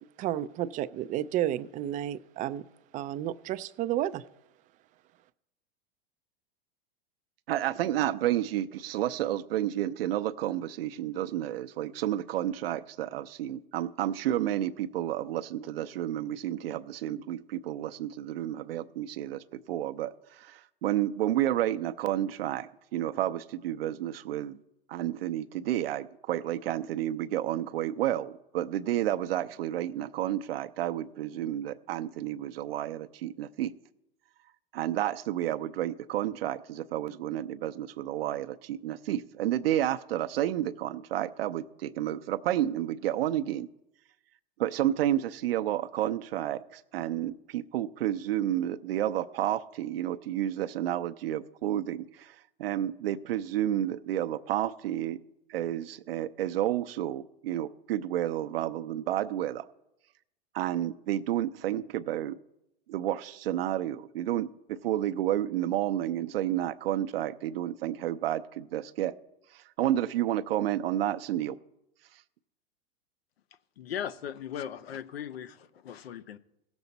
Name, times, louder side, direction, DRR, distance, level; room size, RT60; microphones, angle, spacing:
voice 1, 0.2-2.6 2.9-4.2, right 12 dB, 25° right, 0.3 m, -31 dB
voice 2, 7.5-24.6 24.9-33.7 34.7-43.7 44.6-52.3 52.6-55.2 55.5-59.6 60.5-62.4 62.9-69.1 69.8-71.6, right 12 dB, 75° right, 0.7 m, -31 dB
voice 3, 73.8-76.4, left 9 dB, 85° left, 0.7 m, -38 dB
16.5 x 7.1 x 4.0 m
hypercardioid pair, 110°, 30 cm